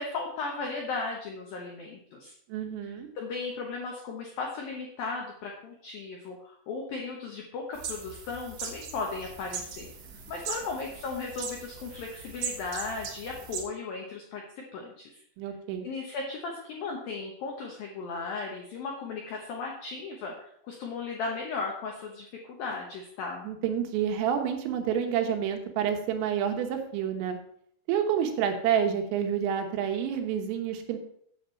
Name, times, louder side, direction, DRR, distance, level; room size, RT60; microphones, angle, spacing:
voice 1, 0.0-2.3 2.8-9.9 10.3-15.2 15.8-23.5, left 4 dB, 80° left, 0 dB, 2.1 m, -36 dB
voice 2, 2.5-3.1 15.4-15.9 23.5-27.4 27.9-31.0, right 8 dB, 85° right, 5 dB, 3.8 m, -28 dB
sound 1, 7.7-13.6, right 5 dB, 70° right, 2.0 m, -39 dB
9.3 x 7.4 x 4.5 m, 0.66 s
omnidirectional pair, 5.8 m